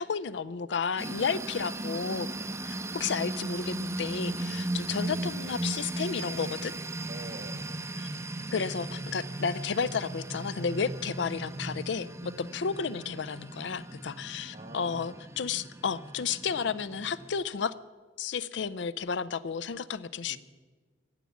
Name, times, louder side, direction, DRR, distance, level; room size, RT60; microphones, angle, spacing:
voice 1, 0.0-2.3 2.6-6.7 8.0-8.1 8.5-17.7 18.2-20.4, left 6 dB, 70° left, 18 dB, 0.5 m, -32 dB
sound 1, 1.0-17.3, right 2 dB, 15° right, 0.6 m, -37 dB
voice 2, 2.3-2.7 7.1-7.8 14.5-15.2 20.3-20.4, right 2 dB, 45° right, 5 dB, 1.1 m, -46 dB
15.5 x 9.3 x 7.1 m, 1.4 s
head